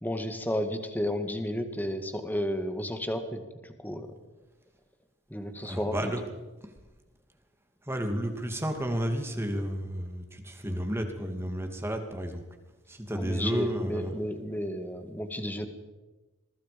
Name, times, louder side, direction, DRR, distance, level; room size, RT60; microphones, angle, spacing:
voice 1, 0.0-4.2 5.3-6.1 13.1-15.7, equal, 10° left, 7 dB, 1.9 m, -32 dB
voice 2, 5.6-6.3 6.6-6.7 7.8-12.4 12.9-14.1, equal, 10° right, 5 dB, 2.7 m, -32 dB
27.0 x 22.5 x 5.3 m, 1.1 s
head